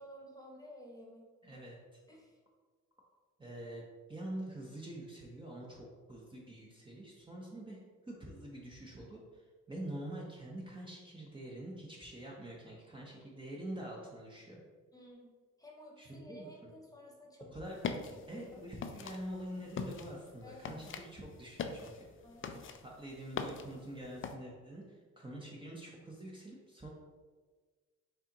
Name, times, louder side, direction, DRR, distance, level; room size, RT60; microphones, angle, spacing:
voice 1, 0.0-1.6 2.1-2.4 14.9-15.3 15.6-17.6 18.1-18.6 20.4-20.8 22.2-22.7, equal, 10° left, -1 dB, 1.0 m, -53 dB
voice 2, 1.4-1.8 3.4-3.8 4.1-14.6 16.0-16.7 17.5-17.8 18.3-22.1 22.8-26.9, right 1 dB, 15° right, -3 dB, 0.8 m, -46 dB
sound 1, 17.7-24.4, left 5 dB, 45° left, 0.4 m, -43 dB
5.6 x 2.5 x 3.9 m, 1.4 s
cardioid pair, 90°, 30 cm